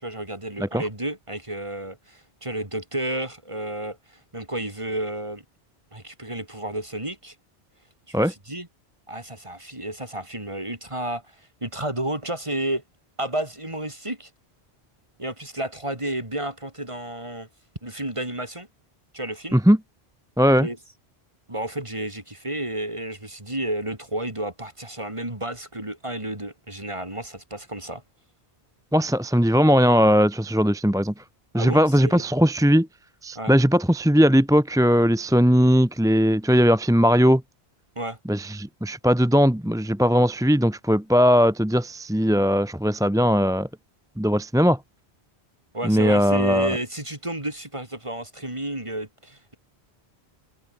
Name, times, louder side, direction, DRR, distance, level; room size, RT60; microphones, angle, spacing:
voice 1, 0.0-4.0 4.3-5.4 5.9-7.3 8.1-8.7 9.1-11.2 11.6-12.8 13.2-14.3 15.2-17.5 17.8-18.7 19.1-19.6 20.6-20.8 21.5-28.0 31.5-32.2 33.4-33.6 38.0-38.2 45.7-49.6, right 1 dB, 30° right, 3.9 m, -31 dB
voice 2, 20.4-20.7 28.9-31.1 31.5-32.9 33.2-37.4 38.3-43.7 44.2-44.8 45.8-46.7, equal, 5° right, 0.8 m, -19 dB
omnidirectional pair, 1.1 m